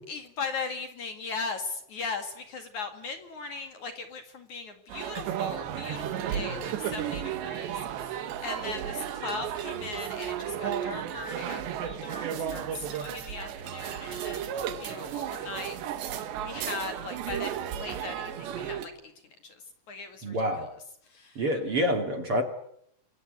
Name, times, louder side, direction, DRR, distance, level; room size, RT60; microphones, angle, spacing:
voice 1, 0.1-15.8 16.4-18.9 19.2-21.4, left 4 dB, 50° left, 7 dB, 3.1 m, -39 dB
sound 1, 4.9-18.9, right 9 dB, 85° right, 3.9 m, -34 dB
voice 2, 20.2-20.7 21.4-22.4, equal, 35° right, 5 dB, 3.0 m, -27 dB
29.5 x 24.5 x 8.1 m, 0.72 s
omnidirectional pair, 4.9 m